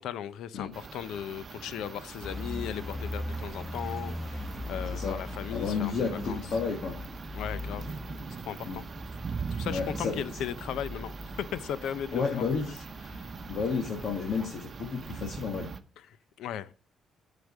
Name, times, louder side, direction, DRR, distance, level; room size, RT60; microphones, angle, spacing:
voice 1, 0.0-4.4 4.7-6.4 7.3-7.9 8.5-8.8 9.5-12.5 13.1-13.3 16.0-16.7, left 10 dB, 85° left, 0.6 m, -37 dB
sound 1, 0.7-15.8, right 5 dB, 40° right, 0.9 m, -42 dB
sound 2, 2.2-14.5, left 1 dB, 5° left, 1.6 m, -40 dB
voice 2, 5.5-6.9 8.6-8.8 9.6-10.1 12.1-12.8 13.5-15.7, left 5 dB, 65° left, 1.6 m, -31 dB
8.1 x 5.0 x 6.1 m
cardioid pair, 90°, 0 cm